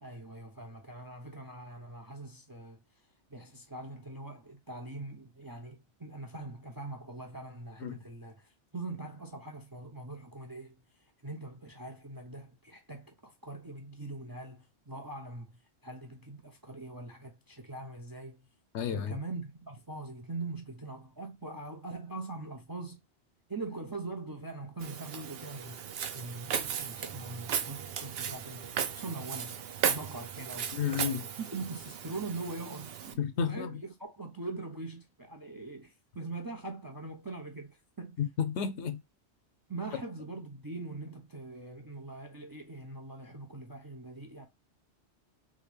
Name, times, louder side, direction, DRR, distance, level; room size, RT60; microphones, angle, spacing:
voice 1, 0.0-2.8 3.3-10.7 11.2-18.4 18.9-23.0 23.5-29.6 29.8-38.2 39.7-44.5, right 2 dB, 30° right, 0.4 m, -42 dB
voice 2, 18.7-19.2 30.7-31.2 33.2-33.7 38.2-39.0, left 7 dB, 80° left, 0.9 m, -31 dB
Walk footsteps, 24.8-33.1, right 8 dB, 65° right, 0.8 m, -36 dB
3.5 x 2.6 x 3.3 m
omnidirectional pair, 1.2 m